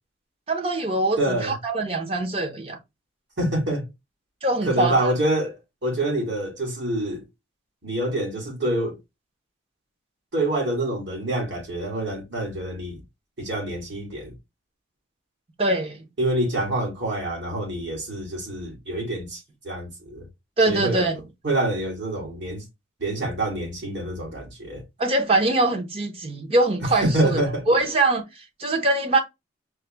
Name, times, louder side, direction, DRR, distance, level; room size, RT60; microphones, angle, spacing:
voice 1, 0.5-2.8 4.4-5.1 15.6-16.0 20.6-21.2 25.0-29.2, right 2 dB, 30° right, 0.6 m, -23 dB
voice 2, 1.2-1.5 3.4-3.9 4.7-5.5 5.8-7.3 7.8-9.0 10.3-13.0 13.4-14.3 16.2-20.2 20.7-21.1 21.4-22.6 23.0-24.8 27.0-27.6, right 1 dB, 70° right, 2.0 m, -26 dB
4.8 x 2.1 x 3.3 m
head